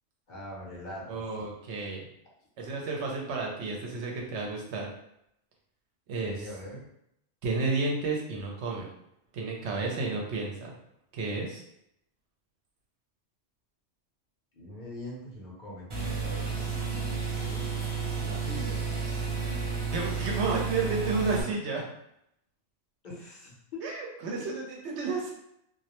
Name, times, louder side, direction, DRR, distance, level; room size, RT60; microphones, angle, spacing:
voice 1, 0.3-1.5 6.2-6.9 14.6-17.7 18.2-18.8 23.0-23.8, left 1 dB, 50° left, -4 dB, 0.7 m, -43 dB
voice 2, 1.1-2.1 2.6-4.9 6.1-6.5 7.4-8.9 9.3-10.7 11.1-11.6 19.8-21.8 23.8-25.3, right 3 dB, 75° right, -1 dB, 0.9 m, -31 dB
sound 1, 15.9-21.4, right 5 dB, 40° right, 0.5 m, -32 dB
2.3 x 2.1 x 2.8 m, 0.78 s
omnidirectional pair, 1.2 m